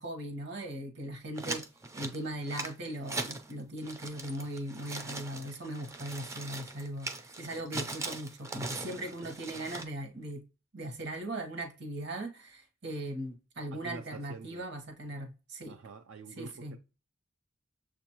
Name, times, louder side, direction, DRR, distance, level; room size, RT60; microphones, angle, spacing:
voice 1, 0.0-1.6 1.9-10.4 10.7-15.7 16.4-16.7, right 1 dB, 60° right, 1.0 m, -39 dB
sound 1, 1.4-3.5 3.8-9.9, right 2 dB, 15° right, 0.4 m, -40 dB
voice 2, 13.7-14.6 15.7-16.8, right 3 dB, 90° right, 0.5 m, -46 dB
6.9 x 2.5 x 2.9 m
head